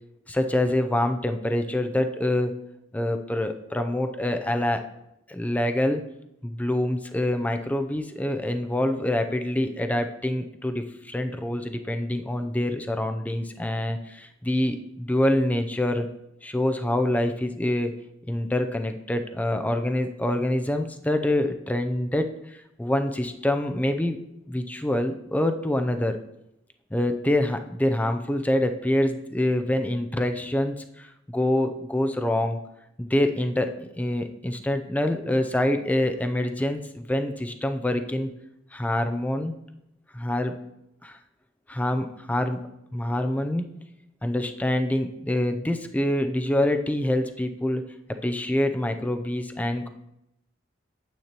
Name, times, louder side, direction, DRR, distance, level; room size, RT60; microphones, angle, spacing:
voice 1, 0.3-2.5 2.9-4.8 5.3-6.0 6.4-16.1 16.4-17.9 18.3-24.2 24.5-26.2 26.9-32.6 33.0-38.3 38.7-39.5 40.1-40.6 41.0-41.2 41.7-42.6 42.9-43.6 44.2-47.8 48.2-49.9, left 1 dB, 10° left, 7 dB, 0.5 m, -26 dB
9.3 x 8.3 x 2.9 m, 0.84 s
head